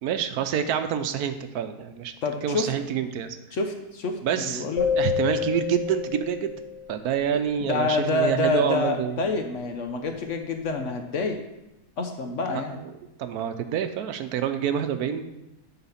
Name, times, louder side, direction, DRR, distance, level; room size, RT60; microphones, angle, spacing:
voice 1, 0.0-2.1 2.4-3.6 4.2-4.6 4.9-6.5 6.9-9.2 12.7-12.9 13.2-15.3, right 9 dB, 75° right, 9 dB, 1.1 m, -27 dB
voice 2, 2.2-2.7 3.5-4.9 7.6-11.4 12.0-12.8, left 3 dB, 55° left, 5 dB, 1.0 m, -27 dB
sound 1, 4.8-7.0, left 7 dB, 25° left, 0.9 m, -28 dB
9.9 x 4.1 x 5.6 m, 0.94 s
omnidirectional pair, 1.7 m